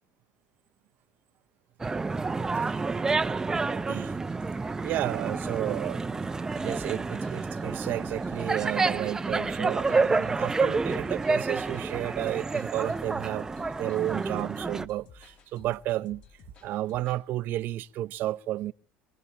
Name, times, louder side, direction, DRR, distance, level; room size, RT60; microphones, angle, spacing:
sound 1, 1.8-14.8, right 3 dB, 15° right, 0.7 m, -29 dB
voice 1, 3.7-4.1 4.8-6.3 6.6-13.5 13.8-16.2 16.6-18.7, right 14 dB, 55° right, 0.7 m, -32 dB
sound 2, 6.6-17.2, left 4 dB, 45° left, 3.8 m, -54 dB
25.0 x 18.5 x 3.0 m
supercardioid pair, 115°, 4 cm